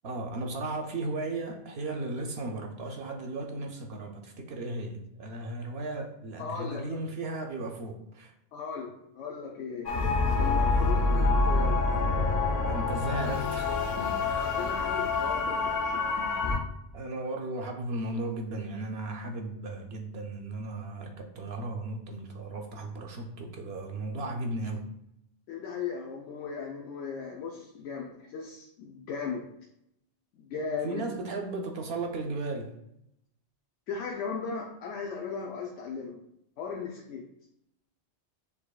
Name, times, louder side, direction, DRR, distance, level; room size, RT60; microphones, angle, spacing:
voice 1, 0.0-8.3 12.6-14.2 16.2-16.4 16.9-24.9 30.8-32.7, right 2 dB, 65° right, 3 dB, 0.8 m, -35 dB
voice 2, 6.4-7.0 8.5-10.0 10.4-11.9 14.4-16.1 25.5-29.5 30.3-31.1 33.9-36.2 36.6-37.2, left 5 dB, 85° left, 0 dB, 0.9 m, -37 dB
sound 1, 9.9-16.6, left 3 dB, 60° left, 0.4 m, -26 dB
6.7 x 2.8 x 2.3 m, 0.79 s
omnidirectional pair, 1.2 m